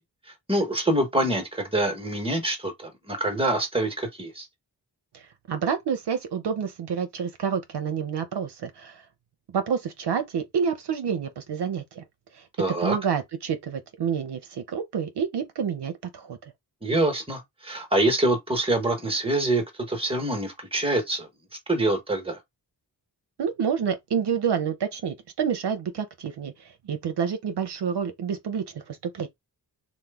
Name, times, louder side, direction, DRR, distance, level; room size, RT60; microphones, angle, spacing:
voice 1, 0.5-4.5 12.6-12.9 16.8-21.3 21.7-22.4, right 1 dB, 15° right, 1.1 m, -25 dB
voice 2, 5.1-9.0 9.5-12.0 12.3-12.4 12.8-16.5 23.4-29.3, right 7 dB, 70° right, 0.6 m, -28 dB
3.0 x 2.2 x 3.4 m
wide cardioid pair, 80°, 42 cm